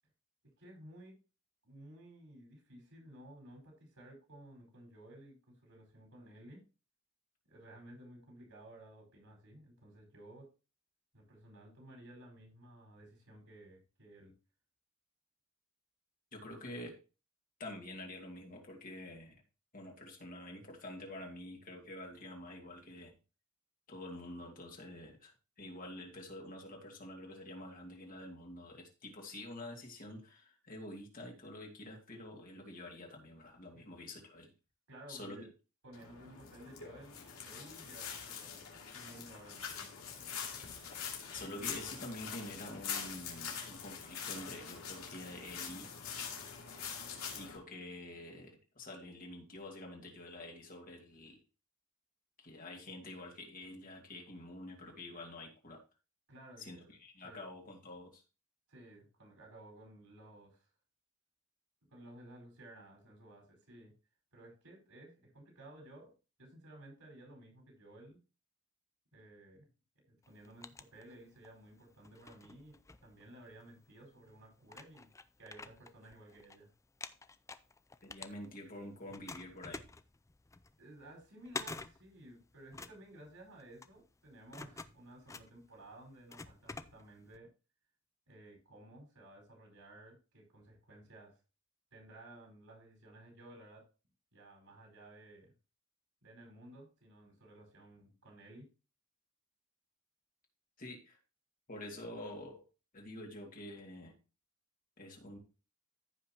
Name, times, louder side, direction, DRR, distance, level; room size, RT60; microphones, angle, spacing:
voice 1, 0.6-1.2 1.6-6.6 7.4-10.5 11.1-14.3 33.7-33.8 34.9-35.5 35.8-39.9 56.3-56.9 57.2-57.5 58.7-60.7 61.9-63.9 64.3-66.1 66.4-68.2 69.1-69.7 70.1-72.7 73.0-75.1 75.4-76.7 80.8-87.5 88.3-91.3 91.9-93.8 94.3-95.5 96.2-98.7, right 1 dB, 75° right, 0 dB, 5.0 m, -55 dB
voice 2, 16.3-17.0 17.6-19.4 19.7-23.1 23.9-34.5 35.1-35.4 41.3-45.9 47.3-51.4 52.4-55.8 56.6-58.2 78.0-79.8 100.8-101.2 101.7-102.6 102.9-104.1 105.0-105.4, left 1 dB, 40° left, 1 dB, 2.4 m, -47 dB
sound 1, 35.9-47.6, left 7 dB, 70° left, 2.9 m, -44 dB
sound 2, 70.2-71.6 72.0-73.7 74.3-74.4 74.7-76.6 76.8-78.8 79.1-87.4, left 3 dB, 15° left, 0.4 m, -48 dB
14.5 x 5.6 x 3.0 m, 0.32 s
head